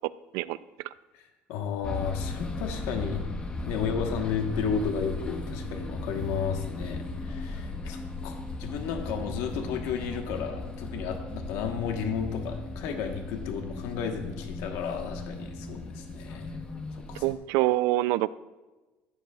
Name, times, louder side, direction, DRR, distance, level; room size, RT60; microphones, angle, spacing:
voice 1, 1.2-3.2 3.6-8.3 8.6-16.6 16.9-17.2, left 6 dB, 75° left, 4 dB, 1.1 m, -33 dB
sound 1, 1.8-17.3, left 2 dB, 20° left, 1.0 m, -37 dB
voice 2, 17.2-18.3, right 16 dB, 80° right, 17 dB, 0.3 m, -25 dB
14.5 x 9.3 x 2.3 m, 1.2 s
cardioid pair, 145°, 5 cm